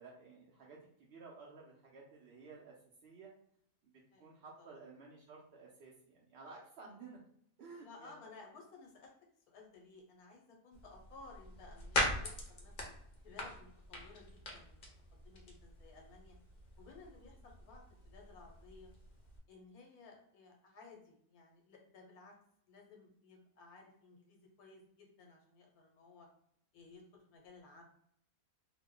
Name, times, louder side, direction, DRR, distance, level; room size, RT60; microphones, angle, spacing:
voice 1, 0.0-2.7 3.0-3.3 3.8-7.2 7.6-8.3, right 4 dB, 60° right, -4 dB, 0.7 m, -54 dB
voice 2, 4.1-4.7 7.6-9.1 9.5-12.9 13.2-16.4 16.8-18.9 19.5-22.3 22.7-26.3 26.7-27.8, left 3 dB, 85° left, 1 dB, 1.3 m, -57 dB
sound 1, 10.7-19.4, left 1 dB, 50° left, 0.7 m, -42 dB
2.9 x 2.0 x 3.7 m, 0.69 s
omnidirectional pair, 1.5 m